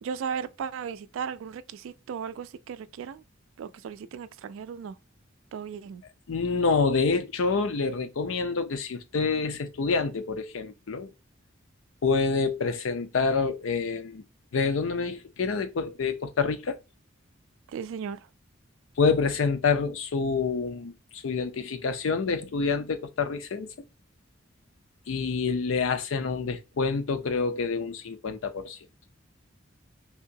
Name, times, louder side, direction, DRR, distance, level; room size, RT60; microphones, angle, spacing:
voice 1, 0.0-3.2 3.6-5.0 5.5-6.0 17.7-18.2, right 7 dB, 75° right, 0.3 m, -36 dB
voice 2, 6.3-11.1 12.0-14.2 14.5-16.8 19.0-23.7 25.1-28.8, left 4 dB, 80° left, 0.5 m, -27 dB
3.4 x 2.8 x 2.6 m
head